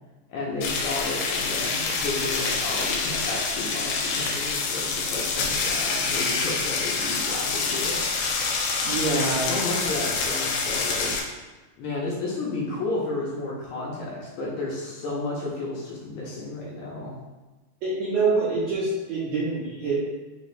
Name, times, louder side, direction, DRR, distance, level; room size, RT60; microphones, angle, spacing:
voice 1, 0.3-8.0 9.1-11.1 11.8-17.2, left 2 dB, 75° left, -4 dB, 1.9 m, -32 dB
sound 1, 0.6-11.2, left 4 dB, 90° left, 2.2 m, -27 dB
voice 2, 8.8-9.5 17.8-20.1, right 3 dB, 75° right, -7 dB, 1.6 m, -25 dB
4.9 x 2.7 x 3.2 m, 1.2 s
omnidirectional pair, 3.7 m